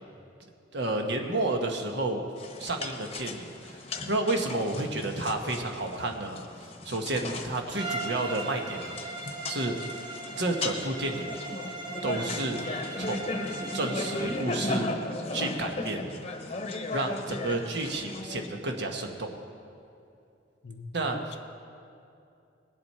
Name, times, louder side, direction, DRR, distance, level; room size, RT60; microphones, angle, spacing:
voice 1, 0.7-2.2 2.6-6.4 6.8-9.0 9.5-9.8 10.4-11.3 12.0-12.6 13.0-13.3 13.7-14.9 15.3-16.1 16.9-19.3 20.9-21.2, right 2 dB, 65° right, 4 dB, 1.2 m, -31 dB
sound 1, 2.4-18.5, left 2 dB, 35° left, 0.9 m, -36 dB
Bowed string instrument, 7.7-14.5, right 2 dB, 25° right, 1.0 m, -39 dB
voice 2, 20.6-21.4, left 3 dB, 65° left, 9 dB, 0.6 m, -43 dB
19.5 x 7.7 x 4.3 m, 2.6 s
head